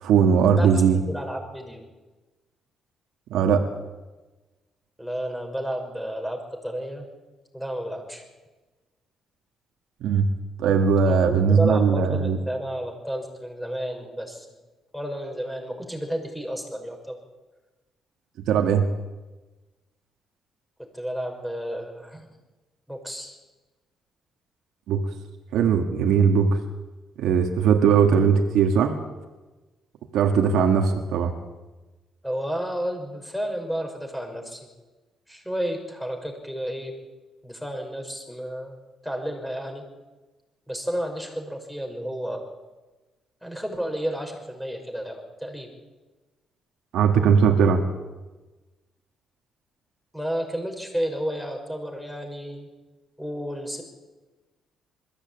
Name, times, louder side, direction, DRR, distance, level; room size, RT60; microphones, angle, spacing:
voice 1, 0.0-1.0 3.3-3.7 10.0-10.3 10.6-12.4 18.5-18.9 24.9-25.0 25.5-26.6 27.2-28.9 30.1-31.3 46.9-47.8, right 6 dB, 85° right, 3 dB, 1.8 m, -19 dB
voice 2, 1.0-1.8 5.0-7.1 7.5-8.2 11.1-14.5 14.9-17.2 20.9-22.3 22.9-23.4 32.2-34.7 35.3-36.9 37.4-38.8 39.0-39.8 40.7-42.5 43.4-45.7 50.1-52.7 53.2-53.8, equal, ahead, 3 dB, 5.5 m, -31 dB
21.5 x 15.0 x 8.9 m, 1.2 s
cardioid pair, 90°, 0 cm